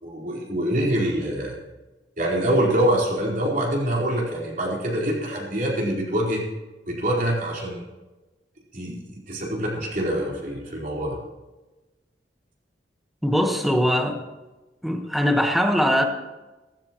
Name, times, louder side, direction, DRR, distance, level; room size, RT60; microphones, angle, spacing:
voice 1, 0.0-1.6 2.2-6.4 6.9-7.8 8.7-11.2, right 1 dB, 50° right, -3 dB, 4.4 m, -25 dB
voice 2, 13.2-14.2 14.8-16.0, equal, ahead, 4 dB, 1.4 m, -21 dB
16.5 x 15.0 x 3.1 m, 1.1 s
head